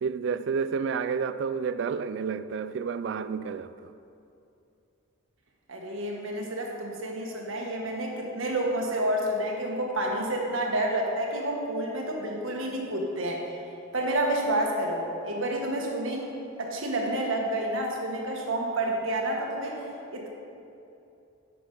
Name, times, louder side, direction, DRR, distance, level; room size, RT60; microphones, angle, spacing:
voice 1, 0.0-3.9, right 6 dB, 60° right, 0.3 m, -30 dB
voice 2, 5.7-13.4 13.9-16.3 16.6-19.8 20.1-20.3, right 1 dB, 80° right, 1.4 m, -29 dB
8.5 x 6.1 x 5.5 m
head